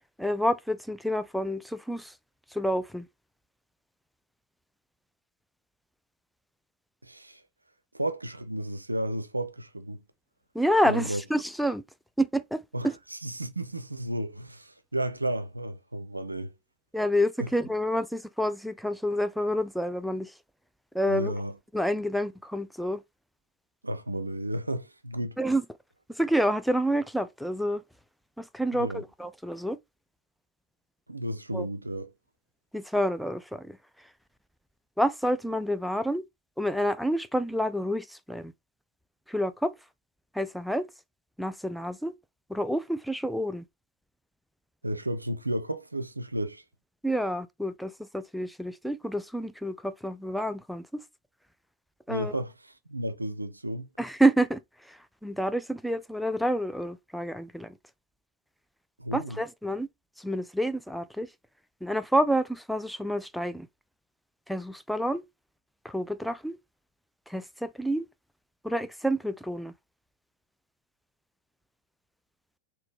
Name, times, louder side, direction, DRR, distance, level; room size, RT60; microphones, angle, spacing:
voice 1, 0.2-2.1 2.5-3.1 10.5-11.8 12.2-12.9 16.9-20.3 20.9-21.3 21.7-23.0 25.4-25.6 26.2-27.8 28.4-28.9 29.2-29.8 31.5-31.7 32.7-33.8 35.0-36.2 36.6-38.5 39.3-39.7 40.3-40.9 41.4-42.1 42.5-43.6 47.0-50.9 52.1-52.4 54.0-54.6 54.9-57.7 59.1-59.9 60.2-61.3 61.8-63.7 64.5-65.2 65.8-66.6 67.3-68.1 68.6-69.7, equal, ahead, 0.3 m, -28 dB
voice 2, 7.0-7.4 7.9-10.0 10.8-11.2 12.7-16.5 17.4-17.5 21.1-21.6 23.8-25.4 28.7-29.0 31.1-32.1 44.8-46.6 52.1-53.9 59.0-59.4, right 1 dB, 85° right, 0.4 m, -33 dB
3.9 x 2.7 x 3.2 m
figure-of-eight pair, 90°, 0 cm